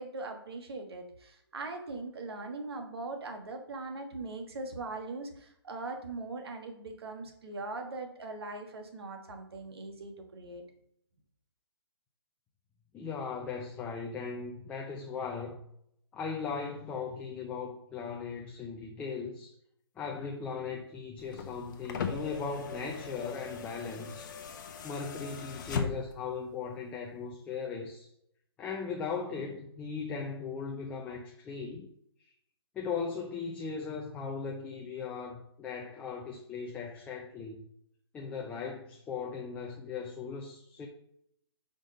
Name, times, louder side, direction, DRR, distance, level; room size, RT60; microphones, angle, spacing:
voice 1, 0.0-10.6, right 3 dB, 65° right, 4 dB, 1.4 m, -40 dB
voice 2, 12.9-15.6 16.1-19.5 20.0-24.3 24.8-28.1 28.6-31.9 32.7-37.6 38.1-40.9, left 5 dB, 10° left, 0 dB, 0.5 m, -38 dB
sound 1, 21.2-26.3 27.5-27.6, left 5 dB, 45° left, 0.8 m, -39 dB
5.0 x 3.6 x 5.1 m, 0.74 s
hypercardioid pair, 145°, 14 cm